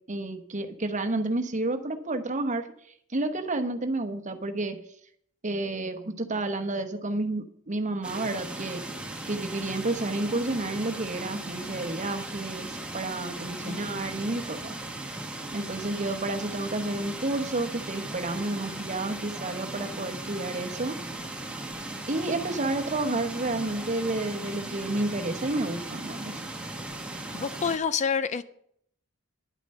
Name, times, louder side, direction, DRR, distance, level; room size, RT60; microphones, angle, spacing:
voice 1, 0.1-2.7 3.1-4.8 5.4-8.8 9.2-14.7 15.5-21.0 22.1-26.4, right 2 dB, 35° right, 1.0 m, -30 dB
sound 1, 8.0-27.8, right 2 dB, 5° right, 1.2 m, -37 dB
voice 2, 13.6-14.0 27.3-28.4, left 6 dB, 35° left, 0.4 m, -28 dB
10.5 x 9.1 x 5.4 m
head